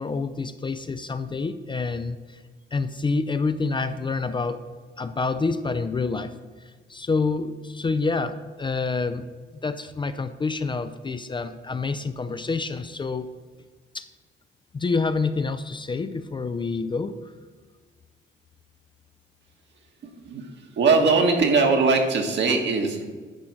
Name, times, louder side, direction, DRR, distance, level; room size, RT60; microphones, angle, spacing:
voice 1, 0.0-2.4 2.7-4.6 5.0-6.3 6.6-9.3 9.5-13.3 13.9-14.1 14.7-17.2, left 4 dB, 25° left, 11 dB, 0.4 m, -27 dB
voice 2, 20.0-20.5 20.7-23.0, right 4 dB, 65° right, 3 dB, 1.4 m, -21 dB
10.0 x 3.9 x 5.9 m, 1.4 s
cardioid pair, 90°, 20 cm